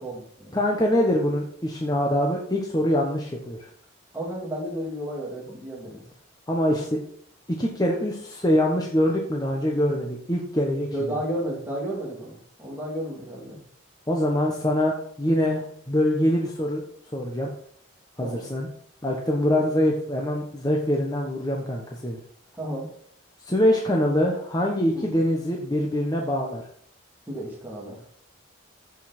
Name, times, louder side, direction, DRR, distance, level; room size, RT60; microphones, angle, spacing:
voice 1, 0.0-0.5 4.1-6.0 10.9-13.6 18.2-18.5 19.5-19.8 22.6-22.9 24.9-25.1 27.3-28.1, right 1 dB, 10° right, -4 dB, 2.9 m, -33 dB
voice 2, 0.5-3.7 6.5-7.0 7.6-10.9 14.1-16.8 17.1-17.5 18.2-18.7 19.0-22.2 23.4-26.6, left 1 dB, 20° left, -1 dB, 1.2 m, -24 dB
14.5 x 5.6 x 4.4 m, 0.63 s
head